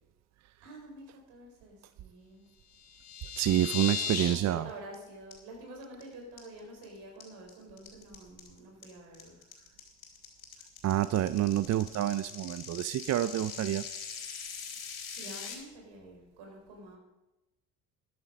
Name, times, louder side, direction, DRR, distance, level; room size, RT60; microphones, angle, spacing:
voice 1, 0.6-2.5 3.9-9.4 15.1-17.0, right 1 dB, 75° right, 1 dB, 4.5 m, -48 dB
sound 1, 2.7-4.4 4.7-5.0 5.3-5.4 5.8-6.0 6.4-6.8 7.2-15.5, left 6 dB, 65° left, 3.7 m, -39 dB
voice 2, 3.4-4.7 10.8-13.9, right 13 dB, 45° right, 15 dB, 0.5 m, -28 dB
13.0 x 11.0 x 5.2 m, 1.0 s
hypercardioid pair, 65°, 40 cm